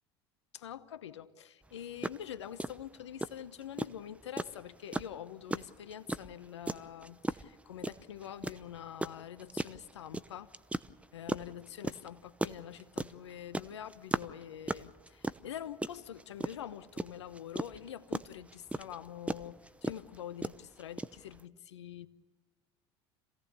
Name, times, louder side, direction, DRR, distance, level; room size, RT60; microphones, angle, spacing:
voice 1, 0.5-10.5 11.1-22.1, left 10 dB, 90° left, 1.0 m, -45 dB
sound 1, 1.7-1.8 2.0-2.2 2.6-21.4, right 2 dB, 10° right, 0.8 m, -36 dB
27.0 x 17.5 x 6.9 m
hypercardioid pair, 75°, 14 cm